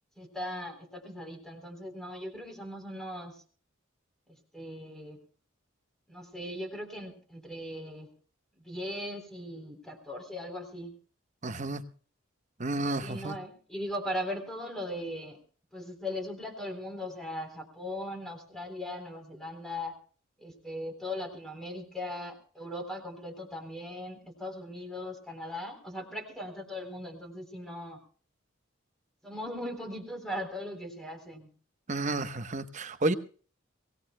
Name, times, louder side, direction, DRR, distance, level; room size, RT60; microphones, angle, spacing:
voice 1, 0.2-3.4 4.5-5.2 6.1-8.1 8.6-10.9 13.0-15.4 15.7-19.9 20.4-28.0 29.2-31.5, left 1 dB, ahead, 3 dB, 3.7 m, -39 dB
voice 2, 11.4-11.8 12.6-13.3 31.9-33.1, right 2 dB, 35° right, 10 dB, 1.0 m, -31 dB
24.0 x 18.5 x 2.2 m, 0.41 s
head